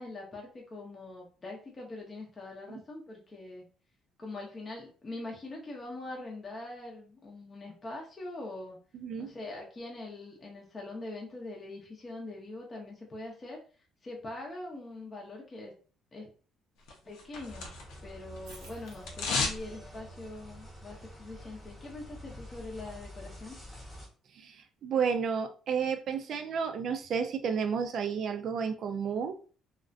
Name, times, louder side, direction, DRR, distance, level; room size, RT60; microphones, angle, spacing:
voice 1, 0.0-3.6 4.2-8.8 9.2-13.6 14.0-15.7 16.1-16.3 17.0-17.7 18.0-23.6, left 2 dB, 25° left, -1 dB, 0.6 m, -43 dB
voice 2, 8.9-9.3 24.4-24.6 24.8-29.6, right 6 dB, 55° right, 7 dB, 0.4 m, -31 dB
sound 1, 16.9-18.1 18.4-19.6 19.9-20.0, left 4 dB, 85° left, 0.6 m, -33 dB
sound 2, 17.3-24.1, equal, 5° left, 0.9 m, -48 dB
sound 3, 18.4-19.2 20.5-20.6 23.9-24.0, right 4 dB, 85° right, 0.8 m, -53 dB
2.4 x 2.1 x 2.4 m, 0.39 s
cardioid pair, 115°, 0 cm